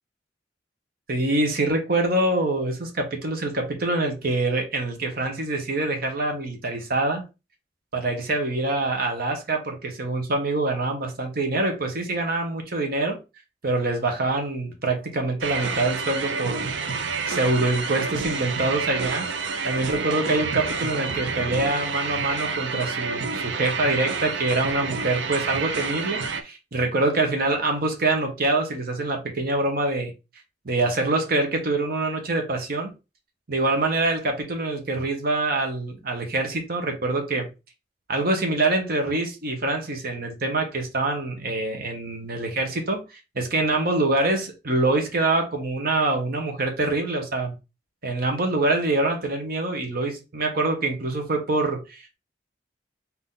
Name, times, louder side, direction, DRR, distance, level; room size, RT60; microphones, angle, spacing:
voice 1, 1.1-7.2 7.9-13.2 13.6-16.8 17.3-19.3 19.6-30.1 30.6-32.9 33.5-37.5 38.1-43.0 43.3-47.5 48.0-52.2, right 2 dB, 55° right, 1.1 m, -25 dB
sound 1, 15.4-26.4, right 4 dB, 75° right, 0.6 m, -29 dB
4.0 x 2.8 x 3.8 m
head